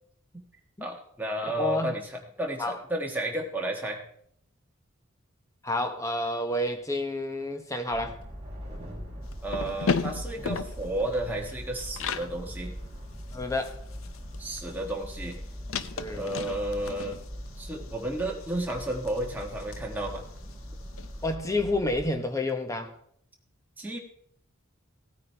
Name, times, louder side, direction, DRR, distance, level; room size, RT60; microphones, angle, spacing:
voice 1, 0.8-4.0 9.4-12.7 14.4-15.4 16.1-17.2 17.6-20.2 23.8-24.0, right 1 dB, 10° right, 1.5 m, -32 dB
voice 2, 1.6-1.9 2.6-2.8 5.6-8.2 13.3-13.8 16.0-16.2 21.2-22.9, left 2 dB, 15° left, 1.0 m, -29 dB
sound 1, 7.9-22.1, equal, 30° right, 4.4 m, -41 dB
sound 2, 9.3-12.3 12.7-12.8 13.1-21.1, left 5 dB, 70° left, 0.6 m, -36 dB
16.0 x 9.2 x 3.4 m
head